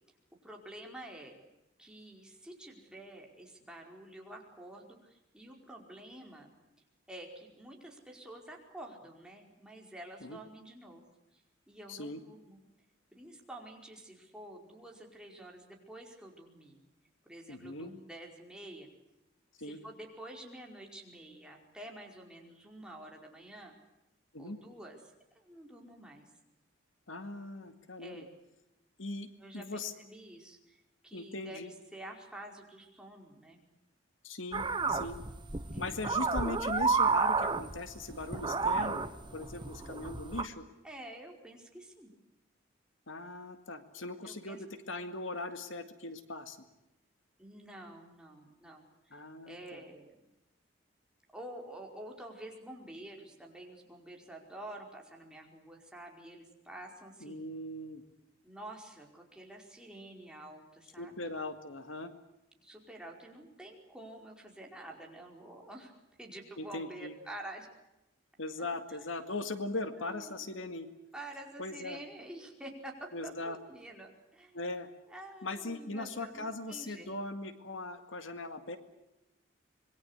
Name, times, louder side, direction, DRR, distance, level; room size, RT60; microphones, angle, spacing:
voice 1, 0.4-1.3 1.8-6.5 7.1-11.0 11.3-11.4 11.7-12.6 13.1-16.8 17.2-18.9 19.6-23.7 24.4-25.0 25.3-26.3 28.0-28.3 29.4-33.6 35.7-36.0 40.8-42.1 44.2-44.6 47.4-50.2 51.3-57.4 58.4-61.2 62.6-65.9 66.2-67.7 68.6-68.7 69.0-69.3 70.0-70.4 71.1-74.6 75.1-77.1, right 1 dB, 5° right, 0 dB, 4.9 m, -49 dB
voice 2, 11.9-12.2 17.5-17.9 19.6-19.8 24.3-24.6 27.1-28.2 29.0-29.3 29.5-29.9 31.1-31.7 34.2-35.2 35.8-39.0 39.3-40.6 43.1-46.6 49.1-49.8 57.2-58.0 61.0-62.1 66.6-67.1 68.4-70.9 71.6-72.0 73.1-73.6 74.5-74.9 75.4-78.8, left 2 dB, 90° left, 8 dB, 2.1 m, -39 dB
sound 1, 34.5-40.4, right 4 dB, 25° right, 1.2 m, -31 dB
26.5 x 22.0 x 8.2 m, 0.90 s
head